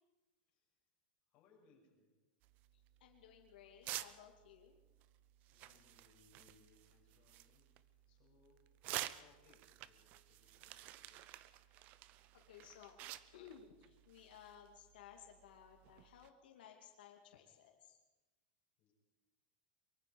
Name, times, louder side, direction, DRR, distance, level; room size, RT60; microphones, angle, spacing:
voice 1, 1.3-2.2 5.5-11.3 18.8-18.9, left 4 dB, 30° left, -3 dB, 7.0 m, -71 dB
sound 1, 2.4-16.3, right 15 dB, 30° right, 0.6 m, -52 dB
voice 2, 3.0-4.8 11.5-11.9 12.3-13.0 13.3-18.0, left 9 dB, 85° left, 2 dB, 2.5 m, -59 dB
23.5 x 23.0 x 5.4 m, 1.1 s
supercardioid pair, 175°, 5 cm